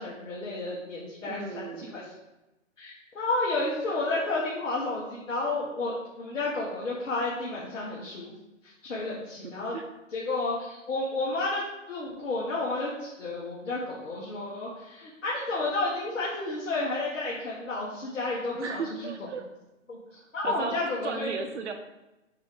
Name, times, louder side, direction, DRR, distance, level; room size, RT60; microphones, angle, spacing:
voice 1, 0.0-2.0 2.8-8.2 8.8-9.8 10.1-18.8 19.9-20.0 20.3-21.3, left 2 dB, 65° left, -5 dB, 1.9 m, -31 dB
voice 2, 1.2-1.9 9.7-9.8 15.2-15.4 18.5-19.4 20.1-20.8 21.0-21.7, right 6 dB, 60° right, 6 dB, 1.0 m, -36 dB
8.0 x 3.1 x 5.4 m, 0.99 s
hypercardioid pair, 150°, 39 cm